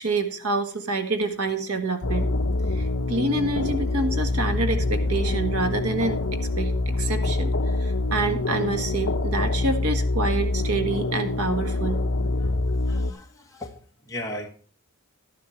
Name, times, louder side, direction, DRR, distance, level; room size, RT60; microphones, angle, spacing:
voice 1, 0.0-2.3 2.7-12.0, right 2 dB, 75° right, 6 dB, 1.6 m, -27 dB
sound 1, 2.0-13.1, left 2 dB, 60° left, 0.9 m, -25 dB
voice 2, 12.4-13.8 14.1-14.5, left 1 dB, 15° left, 0 dB, 1.4 m, -37 dB
12.0 x 11.5 x 3.3 m, 0.43 s
head